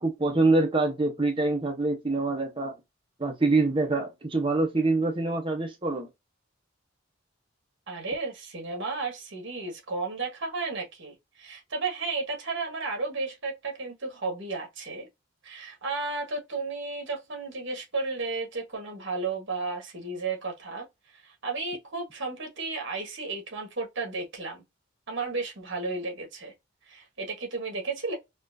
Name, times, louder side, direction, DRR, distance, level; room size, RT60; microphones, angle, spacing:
voice 1, 0.0-2.8 3.2-6.1, right 2 dB, 25° right, 0.9 m, -25 dB
voice 2, 7.9-15.1 15.4-20.9 21.2-24.6 25.1-26.5 26.9-28.2, right 3 dB, 65° right, 1.6 m, -33 dB
4.3 x 2.5 x 2.6 m
head